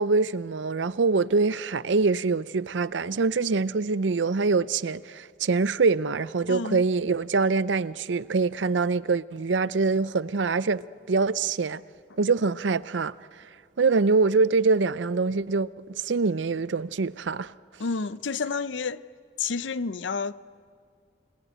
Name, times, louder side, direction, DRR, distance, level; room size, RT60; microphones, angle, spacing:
voice 1, 0.0-10.8 11.1-11.8 12.2-13.1 13.8-17.5, right 4 dB, 80° right, 0.6 m, -24 dB
voice 2, 6.5-6.8 17.8-19.0 19.4-20.3, left 4 dB, 85° left, 0.6 m, -30 dB
29.5 x 19.5 x 9.2 m
head